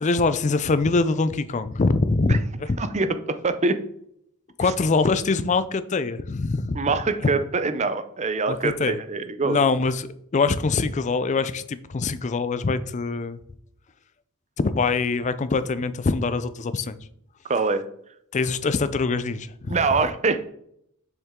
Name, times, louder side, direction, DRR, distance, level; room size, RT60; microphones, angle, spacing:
voice 1, 0.0-2.4 2.7-2.8 4.6-6.8 7.2-7.3 8.5-9.0 9.4-13.4 14.6-17.0 18.3-19.7, left 4 dB, 35° left, 14 dB, 0.4 m, -23 dB
voice 2, 2.8-3.1 3.4-3.8 4.6-4.7 6.7-9.6 17.5-17.9 19.7-20.4, right 3 dB, 30° right, 11 dB, 0.5 m, -24 dB
7.2 x 6.7 x 3.7 m, 0.71 s
head